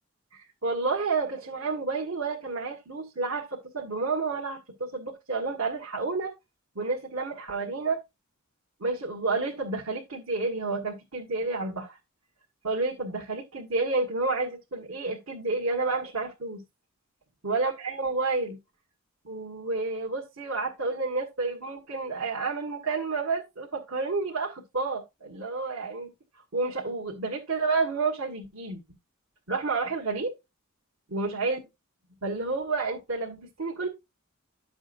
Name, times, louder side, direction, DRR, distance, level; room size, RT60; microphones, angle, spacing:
voice 1, 0.3-6.3 6.7-8.0 8.8-12.0 12.6-16.6 17.4-18.6 19.2-26.1 26.5-28.8 29.5-30.3 31.1-31.6 32.2-33.9, right 3 dB, 75° right, 1.7 m, -30 dB
11.5 x 7.1 x 2.6 m
head